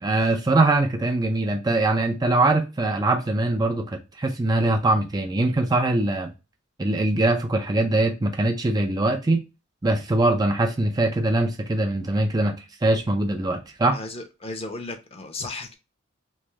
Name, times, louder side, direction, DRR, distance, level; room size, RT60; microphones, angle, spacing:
voice 1, 0.0-6.3 6.8-9.4 9.8-14.0, right 2 dB, 20° right, 0.4 m, -22 dB
voice 2, 13.9-15.8, left 2 dB, 30° left, 0.6 m, -35 dB
3.1 x 2.6 x 3.4 m
head